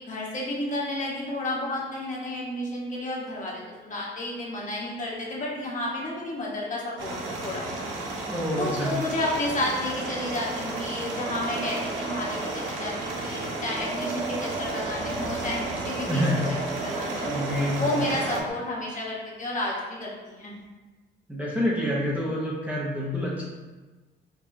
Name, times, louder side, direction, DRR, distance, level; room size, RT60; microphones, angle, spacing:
voice 1, 0.0-7.7 8.6-16.2 16.7-17.3 17.8-20.5, left 1 dB, 40° left, -5 dB, 1.1 m, -31 dB
sound 1, 7.0-18.4, right 2 dB, 75° right, 0.7 m, -33 dB
sound 2, 7.7-18.5, right 3 dB, 45° right, 1.4 m, -37 dB
voice 2, 8.3-9.0 16.1-16.5 17.2-18.0 21.3-23.4, left 1 dB, 5° right, -5 dB, 0.7 m, -27 dB
4.8 x 2.3 x 2.7 m, 1.3 s
cardioid pair, 90°, 20 cm